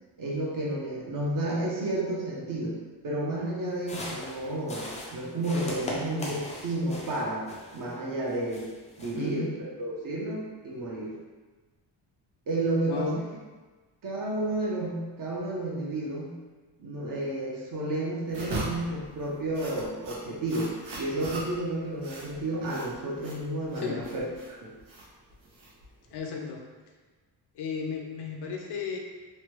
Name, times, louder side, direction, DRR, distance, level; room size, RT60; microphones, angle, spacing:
voice 1, 0.2-2.8 3.0-7.4 7.7-8.7 9.0-11.1 12.5-13.2 14.0-16.3 16.8-24.2 24.6-24.7, right 1 dB, 45° right, -4 dB, 0.8 m, -31 dB
sound 1, 3.7-7.9 8.3-9.3, left 1 dB, 15° left, 0.4 m, -39 dB
voice 2, 9.2-9.6 12.8-13.2 23.8-24.1 26.1-26.6 27.5-29.0, left 5 dB, 65° left, 1 dB, 0.6 m, -34 dB
sound 2, 18.3-26.2, right 2 dB, 80° right, 0.9 m, -40 dB
3.2 x 2.2 x 3.0 m, 1.3 s
wide cardioid pair, 150°, 44 cm